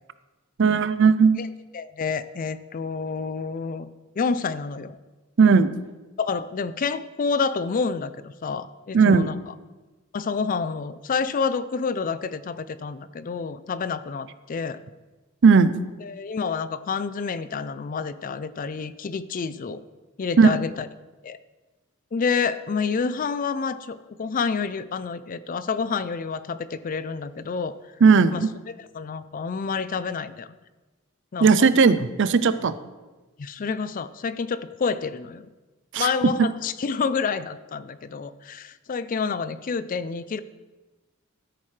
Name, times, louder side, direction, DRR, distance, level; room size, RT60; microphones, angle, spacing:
voice 1, 0.6-1.4 5.4-5.8 8.9-9.3 15.4-15.8 20.4-20.5 28.0-28.5 31.4-32.7 35.9-36.1, right 5 dB, 60° right, 13 dB, 0.5 m, -17 dB
voice 2, 1.7-3.9 4.2-5.0 6.2-9.5 10.1-14.8 16.0-19.8 20.2-20.9 21.2-21.4 22.1-27.8 28.3-30.6 31.3-31.7 33.4-35.5 36.0-40.4, left 5 dB, 40° left, 14 dB, 0.4 m, -28 dB
13.5 x 8.5 x 3.3 m, 1.2 s
head